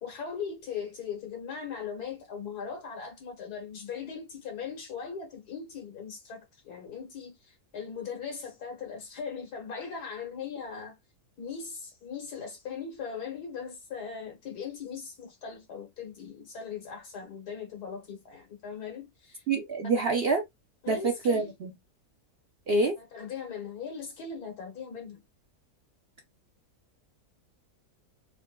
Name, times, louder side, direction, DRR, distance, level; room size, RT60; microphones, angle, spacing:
voice 1, 0.0-11.0 11.4-19.4 20.8-21.5 23.0-25.2, left 6 dB, 90° left, 1.9 m, -39 dB
voice 2, 19.5-20.4 20.9-21.7 22.7-22.9, right 3 dB, 60° right, 0.6 m, -26 dB
4.3 x 2.5 x 2.2 m
omnidirectional pair, 1.6 m